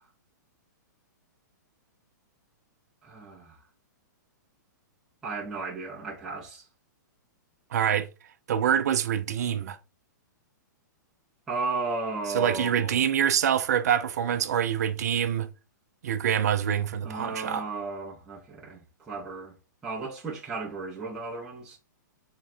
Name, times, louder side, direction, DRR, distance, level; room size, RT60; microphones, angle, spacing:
voice 1, 3.0-3.6 5.2-6.6 11.5-13.1 17.0-18.8 19.1-19.5 19.8-21.8, right 3 dB, 5° right, 0.5 m, -34 dB
voice 2, 7.7-8.1 8.5-9.8 12.3-15.5 16.0-17.6, right 9 dB, 55° right, 0.4 m, -25 dB
3.6 x 2.1 x 4.3 m
hypercardioid pair, 175°, 10 cm